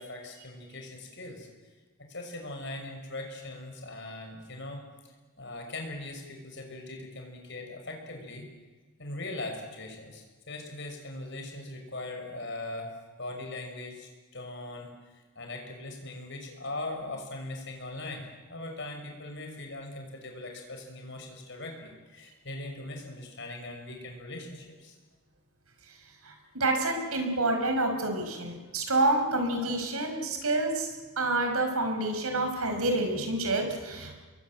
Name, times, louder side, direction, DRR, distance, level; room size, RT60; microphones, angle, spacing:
voice 1, 0.0-1.5 2.1-4.8 5.4-8.5 9.0-14.9 15.4-24.9, left 2 dB, 55° left, 3 dB, 6.1 m, -40 dB
voice 2, 26.2-34.2, right 2 dB, 80° right, 4 dB, 5.1 m, -28 dB
28.5 x 22.5 x 9.2 m, 1.3 s
head